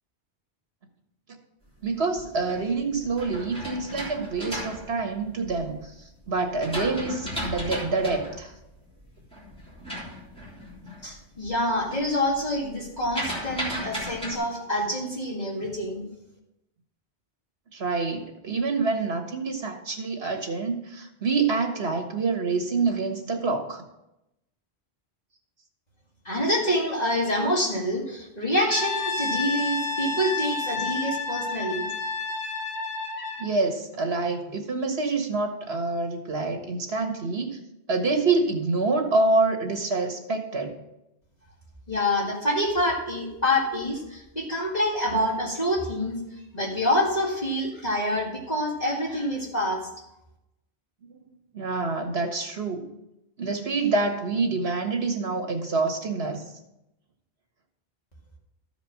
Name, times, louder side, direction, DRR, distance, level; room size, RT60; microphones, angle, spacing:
voice 1, 1.8-8.5 17.7-23.8 33.4-37.6 37.9-40.8 51.1-52.8 53.4-56.4, right 3 dB, 70° right, 4 dB, 1.8 m, -27 dB
sound 1, 1.9-5.8 6.3-11.1 11.4-11.9 12.1-14.4, equal, 5° left, 3.3 m, -35 dB
voice 2, 11.0-16.1 26.3-31.9 41.9-46.2 46.5-49.9, left 1 dB, 40° left, -3 dB, 2.1 m, -26 dB
Brass instrument, 28.7-33.5, left 3 dB, 55° left, 1.7 m, -30 dB
13.5 x 5.1 x 5.9 m, 0.87 s
omnidirectional pair, 1.1 m